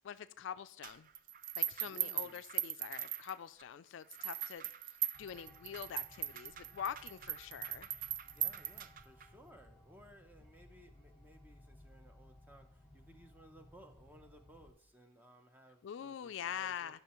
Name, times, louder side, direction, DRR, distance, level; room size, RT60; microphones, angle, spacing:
voice 1, 0.0-1.1 1.6-7.9 15.8-17.0, left 8 dB, 65° left, 13 dB, 0.3 m, -44 dB
sound 1, 0.8-3.6 4.1-9.3, right 12 dB, 45° right, 0.3 m, -40 dB
voice 2, 1.8-2.4 8.2-17.0, right 1 dB, 10° right, 6 dB, 0.7 m, -60 dB
sound 2, 5.1-14.7, left 1 dB, 10° left, 1.6 m, -61 dB
11.5 x 5.6 x 3.0 m, 0.71 s
head